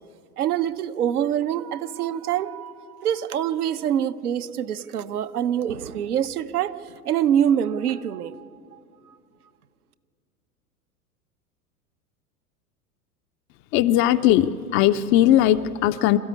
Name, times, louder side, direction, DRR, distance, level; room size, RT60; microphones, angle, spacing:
voice 1, 0.4-6.8 7.0-8.8, right 9 dB, 65° right, 10 dB, 1.0 m, -25 dB
voice 2, 13.7-16.2, left 12 dB, 25° left, 11 dB, 0.5 m, -19 dB
25.5 x 14.0 x 9.7 m, 2.3 s
figure-of-eight pair, 90°, 47 cm